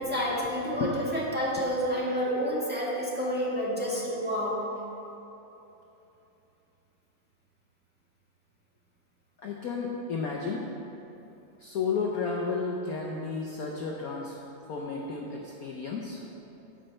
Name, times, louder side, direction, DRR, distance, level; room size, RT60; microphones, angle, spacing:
voice 1, 0.0-4.7, equal, 5° right, -6 dB, 1.6 m, -29 dB
voice 2, 9.4-10.7 11.6-14.3 14.7-16.2, left 4 dB, 60° left, -1 dB, 1.0 m, -32 dB
9.8 x 5.4 x 7.7 m, 3.0 s
omnidirectional pair, 2.2 m